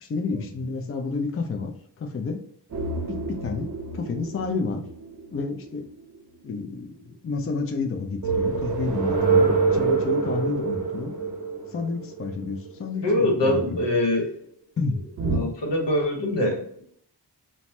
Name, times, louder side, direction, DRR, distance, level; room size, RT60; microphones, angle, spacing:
voice 1, 0.0-2.4 3.1-3.7 3.9-4.8 5.3-5.8 6.4-11.1 11.7-13.9 14.8-15.0, left 4 dB, 35° left, 4 dB, 0.4 m, -30 dB
sound 1, 2.7-6.2 8.2-12.8 15.2-15.4, right 4 dB, 45° right, 0.6 m, -26 dB
voice 2, 13.0-14.3 15.2-16.8, left 1 dB, 80° left, 1 dB, 0.9 m, -24 dB
2.7 x 2.1 x 3.2 m, 0.67 s
cardioid pair, 55°, 42 cm